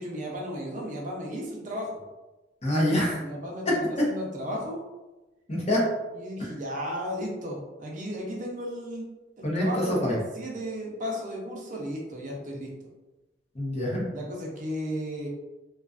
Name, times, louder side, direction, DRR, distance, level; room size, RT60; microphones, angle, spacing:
voice 1, 0.0-2.0 3.2-4.8 6.1-9.1 9.4-12.7 14.1-15.3, equal, 45° right, -1 dB, 0.5 m, -34 dB
voice 2, 2.6-3.2 5.5-5.8 9.4-10.2 13.5-14.0, left 1 dB, 35° left, -4 dB, 0.7 m, -25 dB
2.4 x 2.3 x 2.4 m, 1.1 s
head